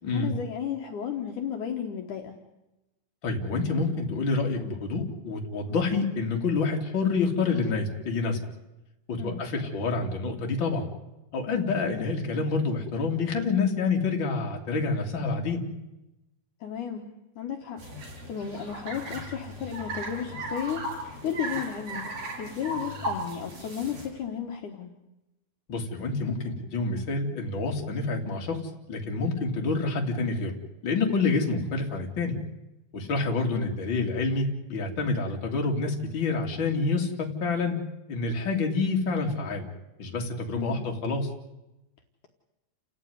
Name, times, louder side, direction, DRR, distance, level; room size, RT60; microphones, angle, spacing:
voice 1, 0.1-2.4 9.2-9.4 16.6-17.1 17.4-22.1 22.4-24.9 40.5-40.8, left 8 dB, 65° left, 3 dB, 2.8 m, -34 dB
voice 2, 3.2-8.4 9.1-10.9 11.3-15.6 25.7-28.6 28.9-30.5 30.8-32.4 32.9-37.8 38.1-39.7 40.0-41.3, left 3 dB, 35° left, 1 dB, 3.2 m, -27 dB
sound 1, 17.8-24.1, right 1 dB, 85° right, 8.3 m, -36 dB
29.5 x 15.0 x 9.6 m, 0.98 s
omnidirectional pair, 4.2 m